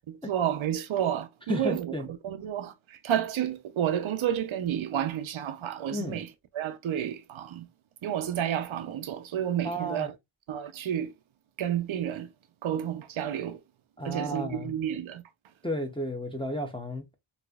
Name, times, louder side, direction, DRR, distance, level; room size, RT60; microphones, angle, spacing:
voice 1, 0.1-6.3 6.5-7.7 8.0-10.2 10.5-11.1 11.6-12.3 12.6-13.6 14.0-15.2, right 10 dB, 75° right, 0.5 m, -30 dB
voice 2, 1.5-2.1 5.9-6.2 9.6-10.1 14.0-14.7 15.6-17.1, equal, 10° left, 0.6 m, -32 dB
4.1 x 2.4 x 2.3 m
wide cardioid pair, 65°, 49 cm